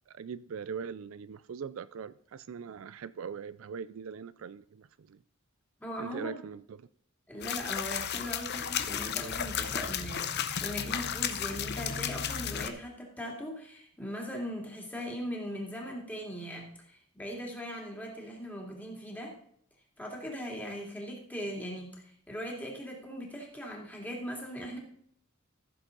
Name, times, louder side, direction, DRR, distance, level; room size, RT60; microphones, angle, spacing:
voice 1, 0.1-5.2 6.0-6.9, right 6 dB, 70° right, 0.4 m, -41 dB
voice 2, 5.8-6.4 7.3-19.4 20.0-24.8, equal, 10° left, 2.7 m, -39 dB
sound 1, 7.4-12.7, left 8 dB, 50° left, 0.8 m, -33 dB
14.5 x 7.1 x 4.0 m
head